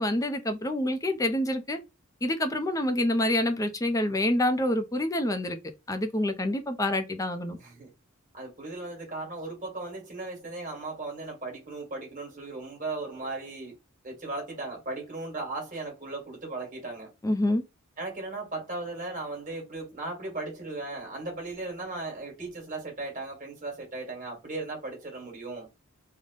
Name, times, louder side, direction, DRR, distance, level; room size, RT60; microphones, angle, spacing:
voice 1, 0.0-1.8 2.2-5.6 5.9-7.6 17.2-17.6, left 1 dB, 15° left, 0.5 m, -27 dB
voice 2, 7.6-7.9 8.3-13.7 14.0-17.1 18.0-25.7, right 2 dB, 40° right, 1.5 m, -37 dB
3.3 x 2.1 x 3.7 m
head